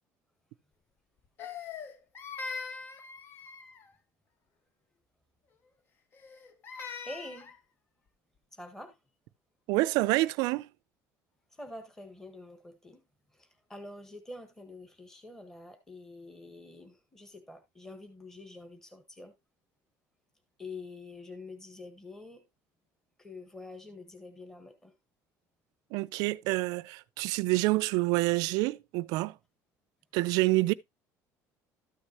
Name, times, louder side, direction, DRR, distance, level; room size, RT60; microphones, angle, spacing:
Crying sobbing, 1.4-3.9 6.1-7.6, left 5 dB, 35° left, 0.8 m, -42 dB
voice 1, 7.0-7.5 8.5-9.0 11.5-13.0 13.3-19.3 20.6-22.4 23.2-24.9, left 2 dB, 5° left, 1.5 m, -46 dB
voice 2, 9.7-10.7 25.9-29.3 30.1-30.7, right 21 dB, 80° right, 0.5 m, -27 dB
13.0 x 6.5 x 2.9 m
cardioid pair, 160°, 6 cm